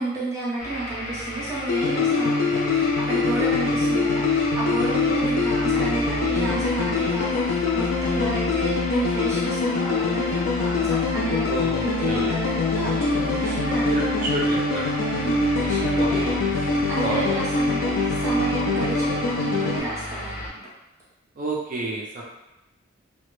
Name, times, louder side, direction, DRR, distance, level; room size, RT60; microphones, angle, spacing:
voice 1, 0.0-11.5 11.8-14.3 15.2-20.6, right 2 dB, 15° right, -9 dB, 0.7 m, -31 dB
sound 1, 0.6-20.5, equal, 40° left, 0.6 m, -33 dB
sound 2, 1.7-19.8, left 3 dB, 85° left, 0.4 m, -24 dB
voice 2, 3.4-3.8 11.5-12.4 13.7-14.9 16.0-16.3 17.0-17.4 21.4-22.2, right 2 dB, 40° right, -4 dB, 0.4 m, -30 dB
2.1 x 2.0 x 3.0 m, 0.93 s
head